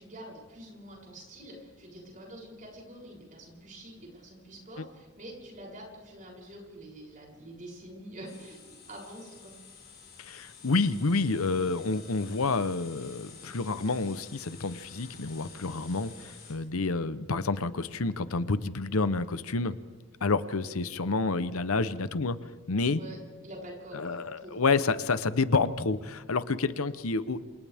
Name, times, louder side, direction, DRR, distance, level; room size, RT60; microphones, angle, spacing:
voice 1, 0.0-8.6 8.9-9.5 23.0-23.2 23.4-24.6, right 1 dB, 35° right, -2 dB, 7.5 m, -46 dB
sound 1, 8.2-16.6, left 6 dB, 45° left, 7.9 m, -51 dB
voice 2, 10.2-19.8 20.2-22.4 22.7-23.0 23.9-27.4, left 3 dB, 75° left, 13 dB, 0.9 m, -29 dB
28.5 x 27.0 x 3.6 m, 1.5 s
head